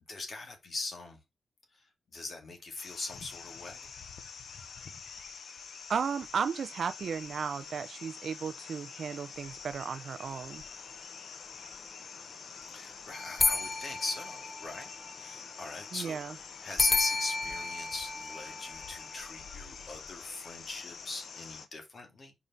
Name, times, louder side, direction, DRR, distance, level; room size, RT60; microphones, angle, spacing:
voice 1, 0.1-1.2 1.8-3.8 12.7-22.3, left 3 dB, 45° left, 2.3 m, -41 dB
sound 1, 2.8-21.7, left 5 dB, 65° left, 1.0 m, -46 dB
voice 2, 5.9-10.6 15.9-16.3, right 6 dB, 60° right, 0.6 m, -34 dB
sound 2, 13.1-15.1 16.8-19.2, left 3 dB, 30° left, 0.6 m, -31 dB
5.2 x 4.9 x 5.6 m
wide cardioid pair, 125°, 0 cm